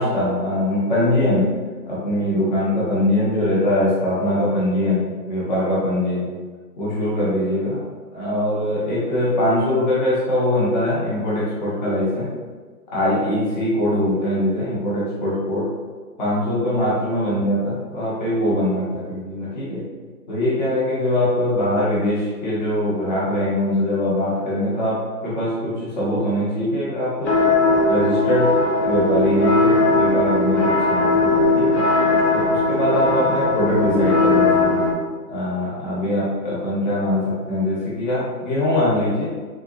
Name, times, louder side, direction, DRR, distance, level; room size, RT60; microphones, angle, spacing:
voice 1, 0.0-1.5 1.9-6.3 6.8-7.8 8.1-12.3 12.9-15.7 16.2-19.8 20.3-27.4 27.8-31.8 32.3-34.9 35.3-39.3, left 1 dB, 25° left, -8 dB, 1.2 m, -22 dB
sound 1, 27.3-34.9, left 2 dB, 45° left, 0.9 m, -18 dB
4.6 x 3.9 x 2.6 m, 1.5 s
hypercardioid pair, 165°, 49 cm